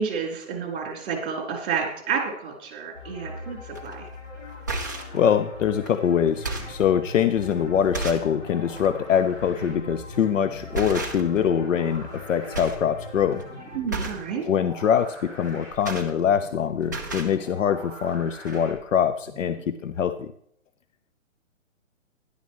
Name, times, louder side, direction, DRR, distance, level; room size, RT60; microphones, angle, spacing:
voice 1, 0.0-4.1 13.7-14.4, right 6 dB, 40° right, 0 dB, 3.8 m, -30 dB
sound 1, 2.9-13.8, left 3 dB, 50° left, 4.6 m, -41 dB
sound 2, 3.7-3.9 4.5-5.2 5.8-5.9 6.3-6.8 7.4-7.5 7.9-8.3 8.7-8.9 10.1-10.3 10.7-11.5 11.8-12.2 12.5-12.9 13.2-13.4 13.9-14.3 15.4-16.6 16.8-17.4 18.1-18.2 18.4-18.6, right 3 dB, 15° right, 0.4 m, -33 dB
voice 2, 5.1-13.4 14.4-20.3, left 8 dB, 70° left, 12 dB, 0.7 m, -23 dB
sound 3, 6.5-19.6, equal, 20° left, 4.7 m, -44 dB
12.5 x 11.0 x 3.1 m, 0.67 s
hypercardioid pair, 160°, 39 cm